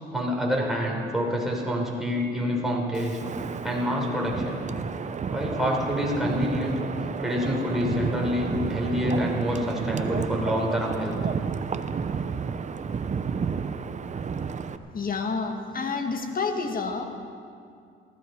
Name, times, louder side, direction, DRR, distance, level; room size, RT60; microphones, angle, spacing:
voice 1, 0.1-3.2 3.6-4.6 5.3-6.8 7.2-11.2, equal, ahead, -2 dB, 3.9 m, -27 dB
Wind, 2.9-14.8, right 6 dB, 35° right, 0.7 m, -31 dB
voice 2, 14.9-17.0, left 4 dB, 45° left, 4 dB, 1.8 m, -29 dB
19.5 x 14.0 x 4.6 m, 2.3 s
cardioid pair, 90°, 20 cm